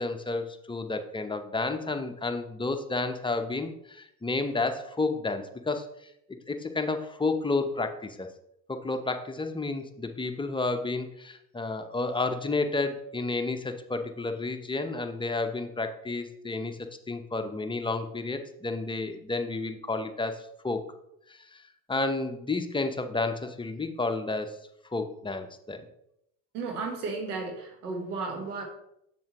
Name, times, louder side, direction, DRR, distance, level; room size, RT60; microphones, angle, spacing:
voice 1, 0.0-5.8 6.5-8.3 8.7-16.8 17.1-20.8 21.3-21.6 21.9-24.6 24.9-25.8, left 3 dB, 10° left, 6 dB, 0.8 m, -31 dB
voice 2, 26.5-28.6, right 4 dB, 85° right, 3 dB, 1.4 m, -34 dB
7.2 x 6.7 x 3.0 m, 0.79 s
hypercardioid pair, 70°, 44 cm